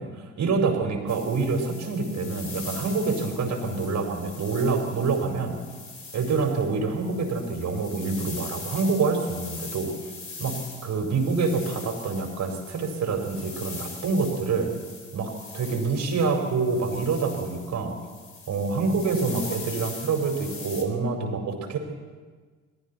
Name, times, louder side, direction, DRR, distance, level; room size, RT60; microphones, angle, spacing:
voice 1, 0.0-5.6 6.1-9.9 10.4-14.7 15.1-17.9 18.5-21.8, right 4 dB, 40° right, 4 dB, 4.6 m, -26 dB
sound 1, 1.1-20.8, left 4 dB, 30° left, 3.8 m, -42 dB
27.5 x 22.5 x 4.2 m, 1.5 s
figure-of-eight pair, 50°, 42 cm